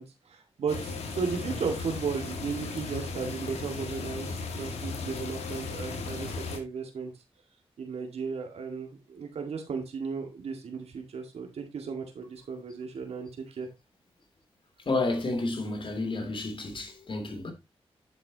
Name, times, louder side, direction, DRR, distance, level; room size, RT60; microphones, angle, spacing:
voice 1, 0.0-7.1 7.8-13.7, right 5 dB, 80° right, 2.0 m, -35 dB
sound 1, 0.7-6.6, left 4 dB, 90° left, 2.0 m, -36 dB
voice 2, 14.8-17.5, left 2 dB, 55° left, 3.2 m, -31 dB
9.5 x 7.4 x 2.9 m
cardioid pair, 65°, 11 cm